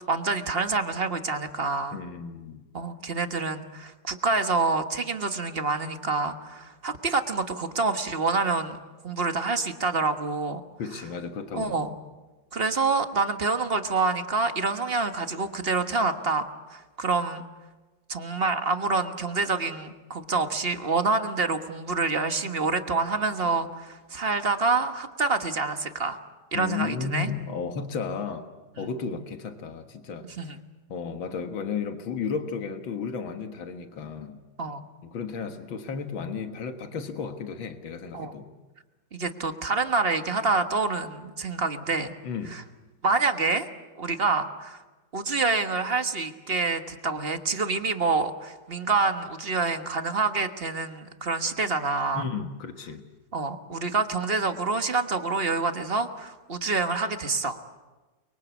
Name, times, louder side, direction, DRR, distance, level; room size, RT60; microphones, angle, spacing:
voice 1, 0.1-2.0 2.7-8.8 9.0-10.6 11.5-11.9 12.5-17.4 18.1-26.2 26.5-27.3 28.8-28.9 30.4-30.6 34.6-34.8 38.1-38.3 39.1-42.1 42.5-42.6 43.0-43.7 44.0-44.8 45.1-52.2 53.3-57.7, right 4 dB, 35° right, 7 dB, 1.5 m, -27 dB
voice 2, 1.9-2.7 10.8-11.9 26.5-28.5 28.8-30.6 30.9-34.4 35.0-38.5 42.2-42.6 52.1-53.0, left 6 dB, 85° left, 6 dB, 2.3 m, -33 dB
30.0 x 23.0 x 8.3 m, 1.2 s
omnidirectional pair, 2.1 m